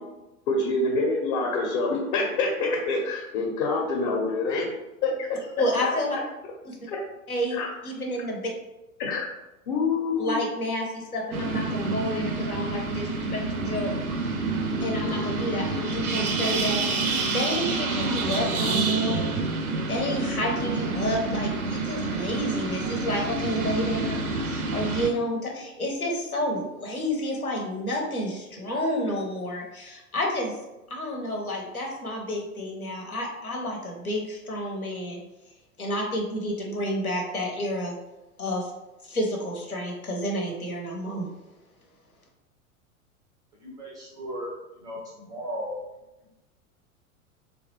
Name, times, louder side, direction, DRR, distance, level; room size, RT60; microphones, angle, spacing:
voice 1, 0.5-4.7 5.0-5.5 5.8-5.9 6.9-7.0 7.5-7.7 9.0-9.2 9.7-10.5, left 3 dB, 40° left, 0 dB, 0.7 m, -26 dB
voice 2, 5.6-6.2 6.6-6.8 7.3-7.6 7.8-8.5 10.2-14.0 14.8-16.8 17.3-19.4 19.9-30.5 30.9-35.2 35.8-37.9 38.4-38.7 39.0-41.3, equal, 90° left, 0 dB, 0.8 m, -30 dB
sound 1, 11.3-25.1, right 3 dB, 85° right, 0.5 m, -28 dB
voice 3, 43.6-44.5 44.8-45.8, equal, 10° right, -3 dB, 0.3 m, -36 dB
3.0 x 2.3 x 3.0 m, 0.99 s
figure-of-eight pair, 90°, 42 cm